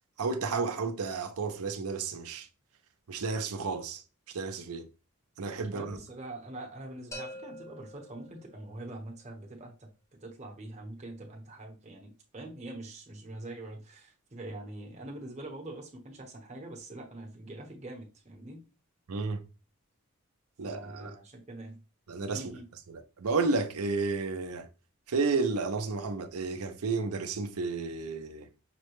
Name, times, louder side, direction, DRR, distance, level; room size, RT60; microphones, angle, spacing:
voice 1, 0.2-2.5 3.1-4.0 4.3-4.9 5.4-6.0 19.1-19.4 20.6-21.2 22.1-22.5 22.9-24.7 25.1-28.5, right 4 dB, 85° right, 0.6 m, -32 dB
voice 2, 5.7-9.9 10.2-18.6 20.6-21.8 22.3-22.6, right 2 dB, 30° right, 1.0 m, -44 dB
sound 1, 7.1-9.0, left 1 dB, 15° left, 0.7 m, -46 dB
5.9 x 2.2 x 3.0 m
head